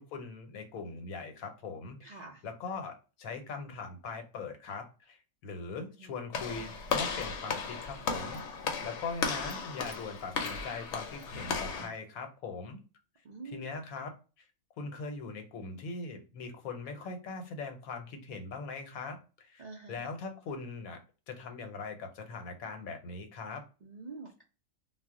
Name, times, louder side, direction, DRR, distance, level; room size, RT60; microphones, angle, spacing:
voice 1, 0.0-2.0 2.4-8.4 8.8-12.8 13.5-14.1 14.8-19.6 19.9-21.0 21.3-23.6, left 4 dB, 90° left, 5 dB, 1.1 m, -41 dB
voice 2, 2.0-2.4 6.0-6.1 11.7-11.9 13.2-13.6 17.0-17.1 19.6-20.1 23.8-24.4, right 3 dB, 80° right, -3 dB, 0.3 m, -47 dB
Walk footsteps / Slam, 6.3-11.9, left 5 dB, 65° left, 0.8 m, -35 dB
2.4 x 2.0 x 3.5 m, 0.34 s
omnidirectional pair, 1.4 m